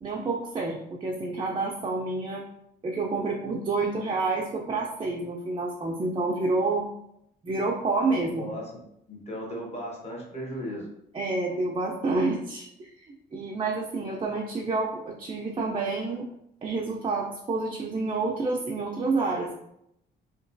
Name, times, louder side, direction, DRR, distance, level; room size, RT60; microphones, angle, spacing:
voice 1, 0.0-2.4 2.8-6.9 7.4-8.5 11.1-16.2 16.6-19.5, right 3 dB, 25° right, -1 dB, 0.4 m, -29 dB
voice 2, 8.4-8.8 9.1-10.9, equal, 30° left, -3 dB, 1.2 m, -36 dB
2.9 x 2.2 x 2.6 m, 0.78 s
cardioid pair, 90°, 20 cm